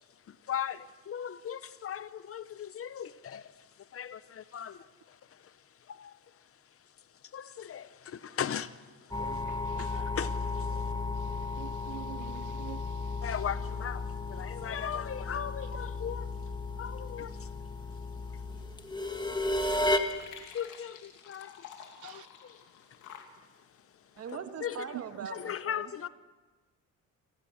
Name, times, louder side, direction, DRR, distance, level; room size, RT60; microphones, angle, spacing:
voice 1, 0.0-6.9 7.2-9.4 9.8-10.9 13.2-17.6 18.3-18.4 20.1-21.7 22.0-23.3 24.6-25.0 25.3-26.1, left 9 dB, 50° left, 0.8 m, -39 dB
sound 1, 9.1-20.0, left 2 dB, 15° left, 1.9 m, -34 dB
voice 2, 9.2-9.8 11.6-12.9 22.0-22.2, right 17 dB, 80° right, 0.6 m, -46 dB
sound 2, 18.1-25.3, left 8 dB, 85° left, 2.6 m, -53 dB
voice 3, 24.2-25.8, right 6 dB, 55° right, 1.7 m, -41 dB
29.0 x 15.5 x 6.4 m
cardioid pair, 90°, 30 cm